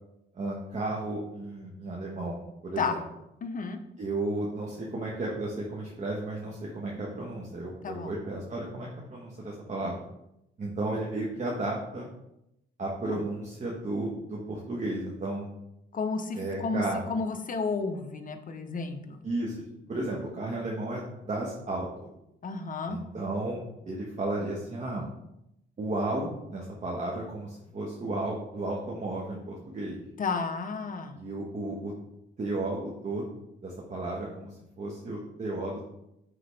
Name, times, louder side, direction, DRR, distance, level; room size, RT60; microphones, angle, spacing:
voice 1, 0.3-3.0 4.0-10.0 10.6-12.1 12.8-15.5 16.4-17.0 19.2-19.6 19.9-22.1 22.9-25.1 25.8-30.0 31.1-31.9 32.4-33.3 33.6-35.9, right 2 dB, 40° right, -3 dB, 1.4 m, -33 dB
voice 2, 3.4-3.8 7.8-8.1 13.0-13.2 15.9-19.2 22.4-23.0 30.2-31.2, left 4 dB, 45° left, 7 dB, 0.9 m, -32 dB
9.8 x 3.9 x 3.5 m, 0.84 s
cardioid pair, 90°, 20 cm